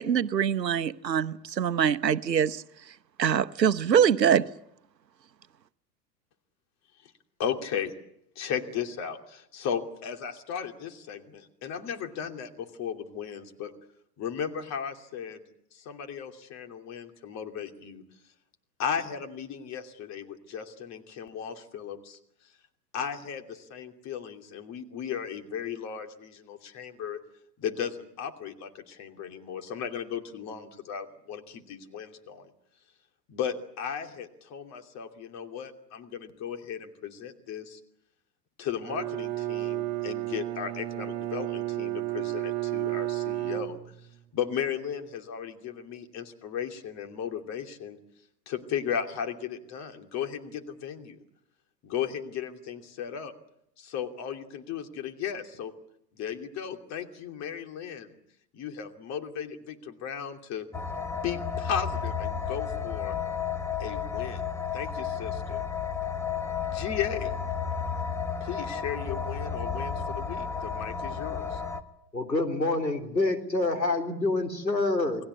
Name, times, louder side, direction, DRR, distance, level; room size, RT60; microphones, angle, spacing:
voice 1, 0.0-2.6 3.2-4.5, right 8 dB, 75° right, 13 dB, 1.0 m, -24 dB
voice 2, 7.4-7.9 8.4-13.7 14.2-15.4 15.7-18.0 18.8-22.2 22.9-27.2 27.6-32.5 33.3-37.8 38.6-43.8 44.3-48.0 48.5-51.2 51.8-53.3 53.8-55.7 56.2-58.2 58.5-60.7 61.1-63.1 63.8-64.4 64.7-65.6 66.6-67.3 68.4-71.6, left 8 dB, 30° left, 5 dB, 2.9 m, -35 dB
Bowed string instrument, 38.8-44.3, right 16 dB, 45° right, 1.7 m, -32 dB
sound 1, 60.7-71.8, left 6 dB, 5° left, 1.3 m, -32 dB
voice 3, 72.1-75.3, left 2 dB, 90° left, 2 dB, 3.5 m, -27 dB
29.0 x 20.0 x 8.3 m, 0.76 s
figure-of-eight pair, 95°, 50 cm